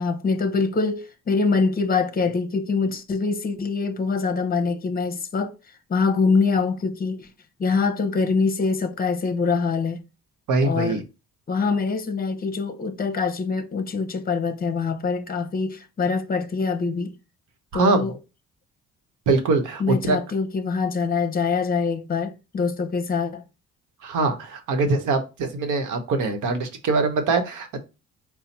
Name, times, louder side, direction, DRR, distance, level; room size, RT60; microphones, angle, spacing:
voice 1, 0.0-5.5 5.9-7.3 7.6-10.0 10.6-11.0 11.5-17.1 17.7-18.1 19.8-23.4, left 4 dB, 30° left, 0.8 m, -24 dB
voice 2, 10.5-11.0 17.7-18.1 19.3-20.2 24.0-27.8, right 3 dB, 80° right, 1.0 m, -23 dB
4.2 x 2.2 x 4.1 m
cardioid pair, 90°, 30 cm